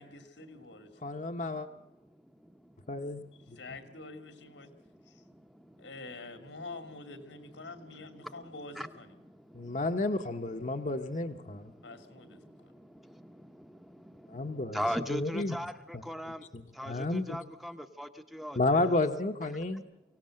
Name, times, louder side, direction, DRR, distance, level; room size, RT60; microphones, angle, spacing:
voice 1, 0.0-0.9 3.6-4.7 5.1-5.2 5.8-9.1 11.8-12.7, left 3 dB, 85° left, 9 dB, 2.5 m, -46 dB
voice 2, 1.0-1.7 2.9-3.2 3.5-3.6 9.5-11.7 14.3-14.8 15.1-15.6 15.9-16.0 16.5-17.4 18.6-19.8, left 2 dB, 40° left, 6 dB, 0.9 m, -31 dB
voice 3, 2.1-2.9 3.5-3.6 4.8-5.9 8.1-8.5 8.7-8.9 9.2-9.8 10.7-10.8 11.5-18.9, equal, ahead, 7 dB, 0.8 m, -41 dB
24.0 x 17.0 x 7.6 m, 0.99 s
head